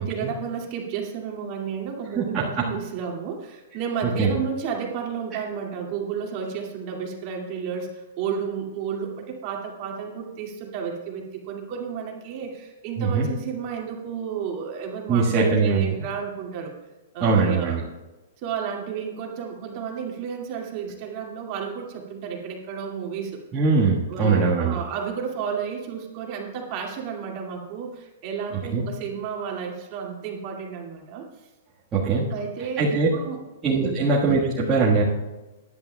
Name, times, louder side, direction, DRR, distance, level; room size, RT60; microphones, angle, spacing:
voice 1, 0.0-16.7 17.1-17.8 18.4-23.4 24.1-31.3 32.3-33.4 33.7-34.0, right 7 dB, 35° right, 0 dB, 2.2 m, -32 dB
voice 2, 2.2-2.6 4.0-4.3 13.0-13.3 15.1-15.9 17.2-17.8 23.5-24.7 28.7-28.8 31.9-32.3 32.8-33.1 33.6-35.0, right 4 dB, 15° right, -8 dB, 1.5 m, -21 dB
18.0 x 11.0 x 2.3 m, 1.1 s
hypercardioid pair, 165°, 0 cm